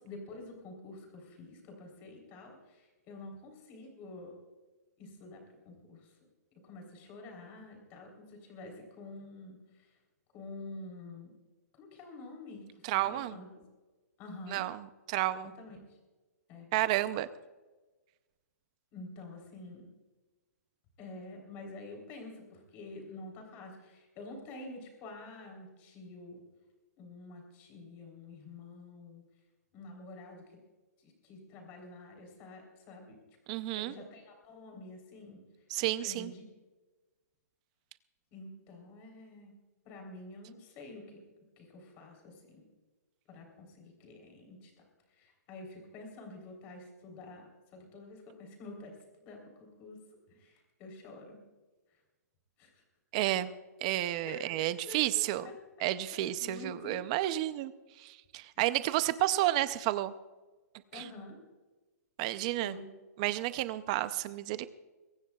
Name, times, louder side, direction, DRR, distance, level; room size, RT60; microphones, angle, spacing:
voice 1, 0.0-4.3 5.0-6.1 6.5-9.9 10.3-11.3 11.8-13.5 14.2-14.7 15.4-16.0 16.5-16.7 18.9-19.9 21.0-26.4 27.0-29.2 29.7-30.4 31.0-33.2 33.8-35.4 36.0-36.4 38.3-39.5 39.9-41.2 41.6-42.7 43.3-44.7 45.2-50.0 50.3-51.4 52.6-52.8 54.3-55.6 56.1-57.0 60.9-61.4 62.6-62.9, left 2 dB, 20° left, 2 dB, 3.6 m, -48 dB
voice 2, 12.8-13.4 14.5-15.5 16.7-17.3 33.5-33.9 35.7-36.3 53.1-53.5 53.8-55.5 55.8-57.7 58.0-60.1 60.9-61.0 62.2-62.8 63.2-64.7, right 15 dB, 25° right, 14 dB, 0.5 m, -31 dB
22.5 x 18.5 x 2.4 m, 1.2 s
hypercardioid pair, 175°, 9 cm